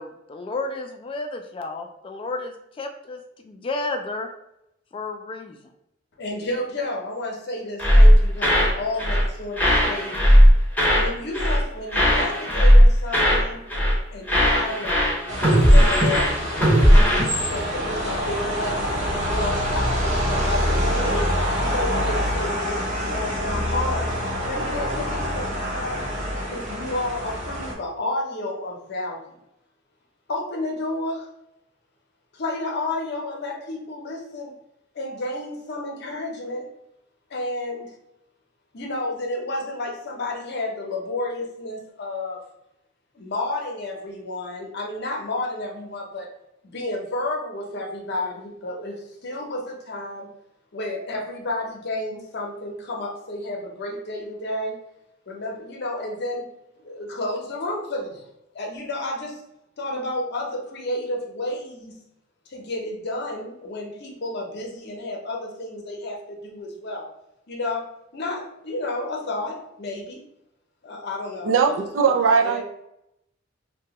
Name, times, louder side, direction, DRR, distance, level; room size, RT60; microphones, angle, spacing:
voice 1, 0.0-4.3 4.9-5.6, left 3 dB, 25° left, 5 dB, 0.3 m, -32 dB
voice 2, 6.2-10.2 11.0-13.6 14.1-15.0 15.6-16.4 16.9-21.3 21.6-24.1 24.4-26.1 26.5-29.2 30.3-31.3 32.3-34.5 34.9-36.7 37.3-37.9 38.7-42.4 43.1-46.3 46.7-50.3 50.7-54.8 55.3-56.5 56.8-58.2 58.5-59.4 59.8-62.0 62.5-67.1 67.5-67.9 68.1-70.2 70.8-71.5 72.0-72.1 72.4-72.6, left 2 dB, 55° left, 0 dB, 0.7 m, -31 dB
sound 1, 7.8-8.7 9.0-9.3 9.6-11.1 11.3-11.6 11.9-13.4 13.7-14.0 14.3-17.2, equal, 10° left, 0.8 m, -16 dB
sound 2, 15.3-27.7, equal, 35° right, 0.8 m, -26 dB
voice 3, 71.4-72.6, right 5 dB, 75° right, 3 dB, 0.4 m, -19 dB
2.8 x 2.2 x 2.8 m, 0.83 s
head